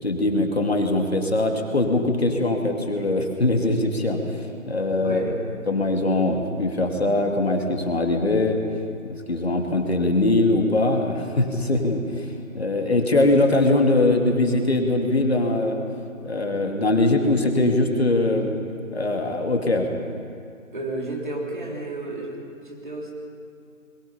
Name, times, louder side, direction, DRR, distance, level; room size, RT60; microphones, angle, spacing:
voice 1, 0.0-5.2 5.7-8.6 9.0-15.8 16.2-18.5 18.9-19.9, left 2 dB, 50° left, 2 dB, 2.5 m, -22 dB
voice 2, 5.0-5.3 20.7-23.1, right 2 dB, 35° right, -1 dB, 3.5 m, -32 dB
28.0 x 22.0 x 5.6 m, 2.5 s
figure-of-eight pair, 175°, 41 cm